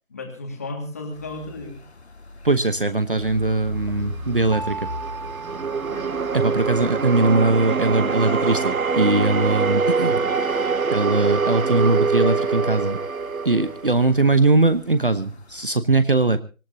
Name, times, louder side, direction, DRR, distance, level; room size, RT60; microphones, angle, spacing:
voice 1, 0.1-1.8 5.9-6.1 9.9-10.3, left 2 dB, 10° left, 2 dB, 2.0 m, -35 dB
sound 1, 1.1-15.6, left 2 dB, 50° left, 2.1 m, -42 dB
voice 2, 2.4-4.9 6.3-10.7 10.9-13.0 13.4-16.4, right 2 dB, 40° right, 13 dB, 1.0 m, -21 dB
sound 2, 4.0-14.4, right 5 dB, 85° right, 1.0 m, -24 dB
sound 3, 4.5-6.9 8.3-9.3 10.3-11.6 12.2-14.6, right 1 dB, 35° left, 2.1 m, -37 dB
25.5 x 15.0 x 2.8 m, 0.33 s
figure-of-eight pair, 175°, 41 cm